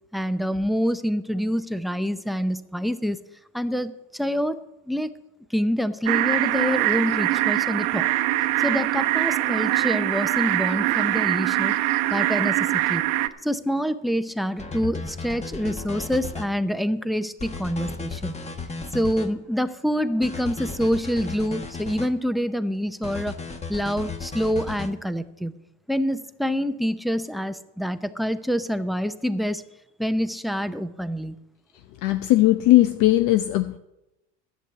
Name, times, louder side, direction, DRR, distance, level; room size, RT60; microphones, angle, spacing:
voice 1, 0.1-3.2 3.5-4.6 4.9-5.1 5.5-8.1 8.6-11.8 12.1-13.0 13.4-18.4 18.9-23.3 23.7-25.5 25.9-29.6 30.0-31.4, equal, ahead, 13 dB, 0.6 m, -26 dB
sound 1, 6.1-13.3, right 16 dB, 70° right, 0.9 m, -23 dB
sound 2, 14.6-16.5 17.4-19.3 20.2-22.1 23.0-24.9, left 4 dB, 20° left, 1.3 m, -35 dB
voice 2, 32.0-33.8, left 16 dB, 60° left, 9 dB, 0.7 m, -18 dB
11.5 x 7.8 x 8.0 m, 0.91 s
supercardioid pair, 105°, 34 cm